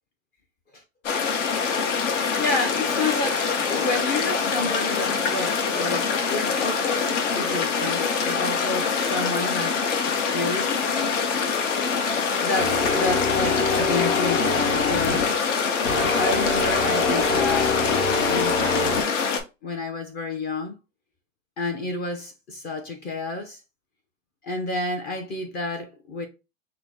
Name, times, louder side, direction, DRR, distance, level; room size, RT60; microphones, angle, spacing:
sound 1, 1.0-19.4, left 5 dB, 60° left, 1.1 m, -25 dB
voice 1, 2.4-11.1 12.4-15.4 15.9-19.0 19.6-20.8 21.6-23.6 24.4-26.3, left 2 dB, 25° left, 0.6 m, -30 dB
sound 2, 12.6-15.4 15.8-19.0, left 3 dB, 85° left, 1.2 m, -25 dB
5.7 x 2.1 x 3.4 m
hypercardioid pair, 125°, 40 cm